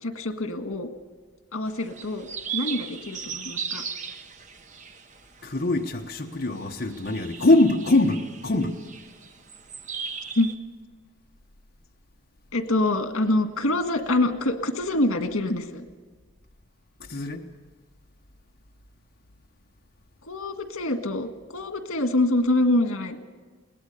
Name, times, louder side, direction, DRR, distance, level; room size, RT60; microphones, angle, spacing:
voice 1, 0.0-0.9 1.5-2.3 2.5-3.8 10.4-10.5 12.5-15.8 20.2-23.2, left 2 dB, 85° left, 1.8 m, -25 dB
sound 1, 1.7-10.5, right 6 dB, 35° right, 1.0 m, -38 dB
voice 2, 5.4-8.8 17.0-17.4, left 2 dB, 50° left, 1.2 m, -23 dB
21.5 x 18.5 x 6.7 m
head